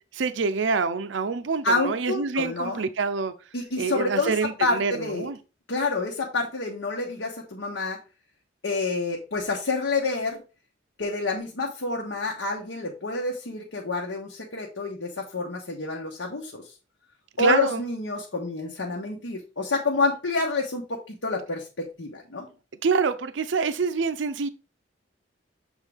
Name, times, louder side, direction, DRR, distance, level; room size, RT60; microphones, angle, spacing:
voice 1, 0.1-3.3 3.8-5.4 17.4-17.8 22.8-24.5, right 5 dB, 70° right, 0.5 m, -26 dB
voice 2, 1.6-2.8 3.5-5.3 5.7-8.0 8.6-10.4 11.0-16.7 17.4-22.5, left 3 dB, 85° left, 1.2 m, -28 dB
7.3 x 3.7 x 3.5 m
head